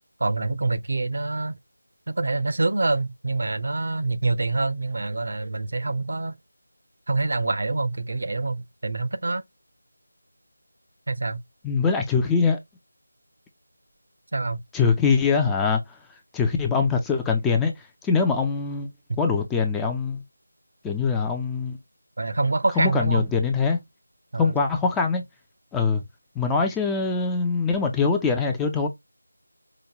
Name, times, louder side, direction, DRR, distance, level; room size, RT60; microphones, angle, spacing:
voice 1, 0.2-1.6 2.1-6.4 7.1-9.4 11.1-11.4 14.3-14.6 22.2-23.2 24.3-24.5, right 3 dB, 55° right, 0.6 m, -26 dB
voice 2, 11.6-12.6 14.7-18.9 19.2-20.2 20.8-21.8 22.7-23.8 24.4-25.2 25.7-26.0 26.4-28.9, left 5 dB, 5° left, 0.4 m, -23 dB
4.9 x 2.2 x 2.8 m
figure-of-eight pair, 170°, 0 cm